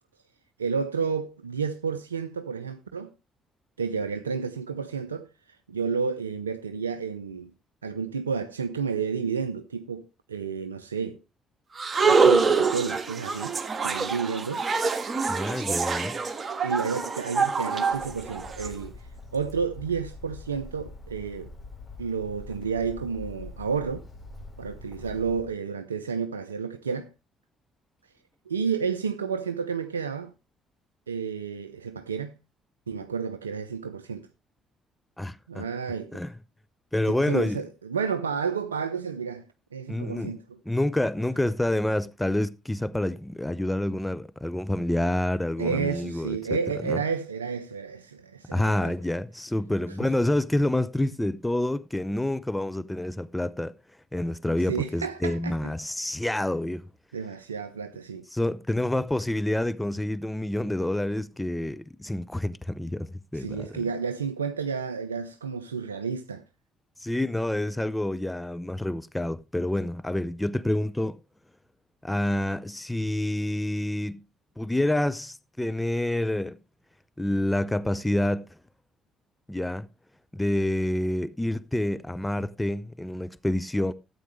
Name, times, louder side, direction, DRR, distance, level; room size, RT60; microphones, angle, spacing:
voice 1, 0.6-3.1 3.8-5.3 5.7-7.5 7.8-11.2 12.0-13.6 13.8-14.6 16.6-18.9 19.3-21.5 22.0-24.0 24.6-27.1 28.5-30.3 31.1-32.3 32.9-34.3 35.5-36.2 37.1-39.4 39.7-40.6 45.6-48.9 54.7-55.7 57.1-58.2 63.3-66.4, right 6 dB, 85° right, 0.5 m, -31 dB
sound 1, 11.8-18.7, right 4 dB, 35° right, 1.6 m, -25 dB
voice 2, 15.3-16.2 35.2-35.7 36.1-36.3 36.9-37.6 39.9-40.3 40.7-46.4 46.8-47.0 48.5-53.7 54.1-56.8 58.3-63.1 63.3-63.8 67.0-71.2 72.0-74.2 74.6-76.6 77.2-78.5 79.5-79.9 80.3-83.9, left 1 dB, 10° left, 0.7 m, -28 dB
Bird, 17.9-25.5, left 3 dB, 35° left, 4.5 m, -44 dB
13.0 x 8.6 x 3.2 m
figure-of-eight pair, 45°, 0 cm